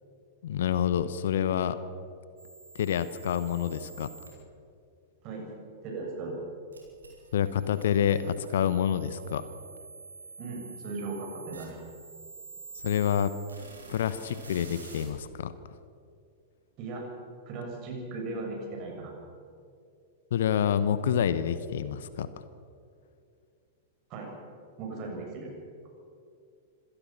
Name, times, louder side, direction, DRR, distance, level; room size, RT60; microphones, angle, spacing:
voice 1, 0.4-1.8 2.7-4.1 7.3-9.4 12.8-13.3 13.9-15.5 20.3-22.3, left 9 dB, 60° left, 14 dB, 1.0 m, -27 dB
sound 1, 2.4-4.3 6.7-15.1, right 4 dB, 75° right, 5.4 m, -48 dB
voice 2, 5.8-6.4 10.4-11.8 16.8-17.0 17.5-19.1 24.1-24.3 24.8-25.5, right 3 dB, 40° right, 1 dB, 7.0 m, -37 dB
26.5 x 17.5 x 5.9 m, 2.4 s
figure-of-eight pair, 95°, 0 cm